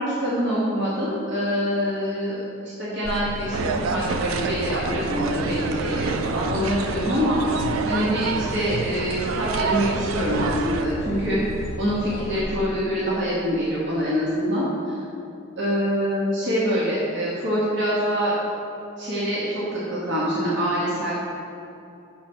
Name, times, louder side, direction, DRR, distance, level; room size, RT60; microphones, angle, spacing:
voice 1, 0.0-7.4 7.8-11.4 11.8-14.9 15.6-18.3 19.0-21.1, equal, 60° right, -7 dB, 1.2 m, -25 dB
sound 1, 3.0-12.4, left 1 dB, 50° left, 0.6 m, -34 dB
sound 2, 3.5-10.8, right 5 dB, 75° right, 0.4 m, -28 dB
6.3 x 4.3 x 6.1 m, 2.8 s
head